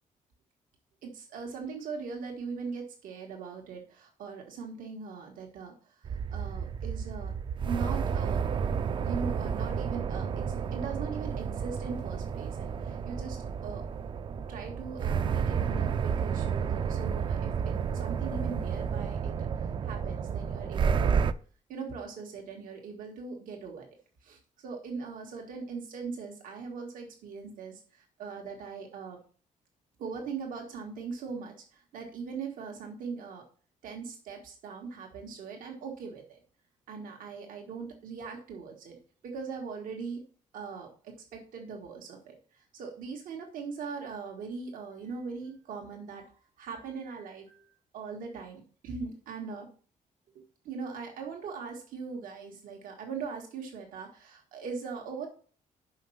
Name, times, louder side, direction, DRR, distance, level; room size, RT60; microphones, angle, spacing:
voice 1, 1.0-7.3 7.6-8.4 9.0-10.5 10.7-13.9 14.3-21.3 21.7-23.9 24.2-29.2 30.0-33.4 33.8-36.4 36.9-39.0 39.2-40.2 40.5-49.7 50.4-55.3, right 5 dB, 90° right, 1 dB, 1.7 m, -40 dB
sound 1, 6.0-21.3, right 6 dB, 35° right, 0.4 m, -31 dB
5.7 x 5.4 x 5.6 m, 0.41 s
cardioid pair, 160°, 14 cm